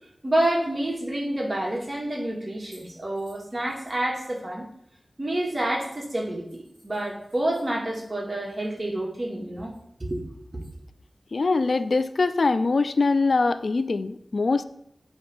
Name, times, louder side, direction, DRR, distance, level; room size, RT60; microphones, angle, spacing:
voice 1, 0.2-4.6 5.2-9.7 10.0-10.2 10.5-10.6, right 1 dB, 40° right, -1 dB, 2.0 m, -28 dB
voice 2, 11.3-14.6, left 3 dB, 75° left, 13 dB, 0.3 m, -23 dB
8.7 x 3.4 x 5.6 m, 0.75 s
wide cardioid pair, 50°, 0 cm